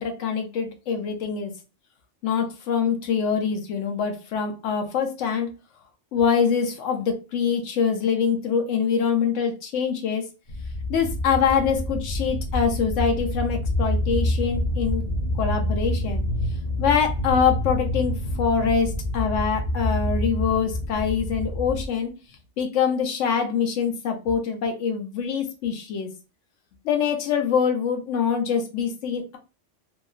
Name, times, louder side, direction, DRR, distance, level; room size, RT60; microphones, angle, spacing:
voice 1, 0.0-1.5 2.2-5.5 6.1-10.2 10.9-15.0 15.4-16.2 16.8-22.1 22.6-26.1 26.8-29.4, left 6 dB, 80° left, 4 dB, 1.0 m, -24 dB
sound 1, 10.5-21.9, left 1 dB, 55° left, 0.5 m, -27 dB
2.9 x 2.3 x 2.3 m, 0.30 s
omnidirectional pair, 1.2 m